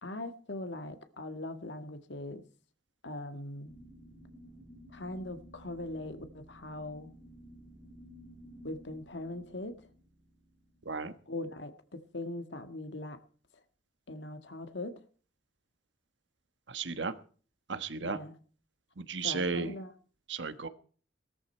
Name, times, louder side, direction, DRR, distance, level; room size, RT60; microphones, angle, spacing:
voice 1, 0.0-2.4 3.0-3.7 4.9-7.1 8.6-9.9 11.3-13.2 14.1-15.0 18.0-18.3 19.2-19.9, left 2 dB, 65° left, 10 dB, 1.7 m, -41 dB
sound 1, 3.7-11.6, equal, 5° left, 8.0 m, -54 dB
voice 2, 16.7-17.1 17.7-18.2 19.0-19.7 20.3-20.7, right 4 dB, 70° right, 12 dB, 1.3 m, -34 dB
18.0 x 13.5 x 4.4 m, 0.42 s
head